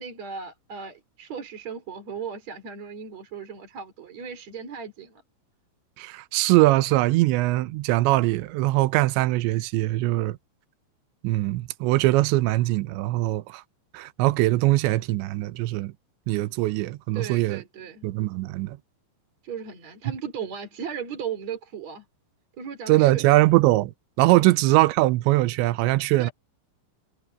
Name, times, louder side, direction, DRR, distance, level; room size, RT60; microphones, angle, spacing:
voice 1, 0.0-5.2 17.1-18.1 19.4-22.0 22.6-23.5 26.2-26.3, right 7 dB, 35° right, 4.3 m, -36 dB
voice 2, 6.0-10.4 11.2-13.6 13.9-15.9 16.3-17.6 18.0-18.8 22.9-23.9 24.2-26.3, right 18 dB, 85° right, 2.6 m, -21 dB
omnidirectional pair, 6.0 m